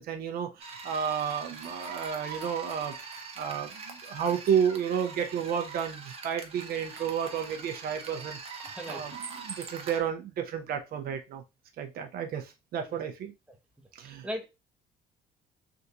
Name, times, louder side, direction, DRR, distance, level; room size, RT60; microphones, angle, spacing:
voice 1, 0.0-3.0 3.4-8.4 8.9-9.2 9.4-11.4 11.8-13.3 14.0-14.3, right 8 dB, 60° right, 5 dB, 0.6 m, -31 dB
sound 1, 0.6-10.0, right 4 dB, 35° right, 0.9 m, -43 dB
voice 2, 8.6-9.0 12.9-13.0 14.0-14.5, equal, 5° right, 3 dB, 0.8 m, -38 dB
3.5 x 2.6 x 2.8 m, 0.25 s
cardioid pair, 110°, 17 cm